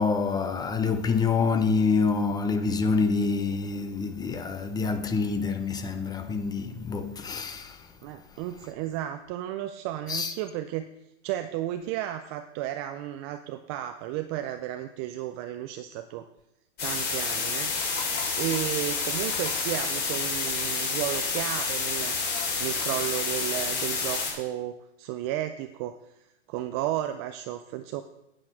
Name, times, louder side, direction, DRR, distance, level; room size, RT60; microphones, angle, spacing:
voice 1, 0.0-7.8 10.1-10.3, left 4 dB, 10° left, 0.6 m, -26 dB
voice 2, 8.0-10.9 11.2-16.3 16.8-22.2 22.6-26.0 26.5-28.0, right 13 dB, 25° right, 0.4 m, -33 dB
sound 1, 16.8-24.3, left 4 dB, 30° left, 4.0 m, -29 dB
sound 2, 17.7-23.0, left 3 dB, 85° left, 3.8 m, -44 dB
9.8 x 8.9 x 6.0 m
hypercardioid pair, 125°, 36 cm